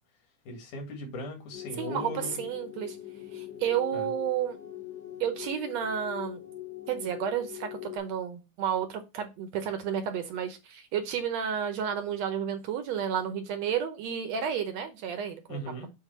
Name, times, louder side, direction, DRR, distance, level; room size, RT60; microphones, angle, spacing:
voice 1, 0.5-2.4 3.9-4.1 15.5-15.9, left 1 dB, 80° left, 3.3 m, -38 dB
sound 1, 1.5-8.0, left 13 dB, 60° left, 2.6 m, -42 dB
voice 2, 1.8-3.0 3.3-4.6 5.2-6.4 6.9-15.6, right 8 dB, 70° right, 1.9 m, -31 dB
7.6 x 3.2 x 5.6 m
omnidirectional pair, 3.5 m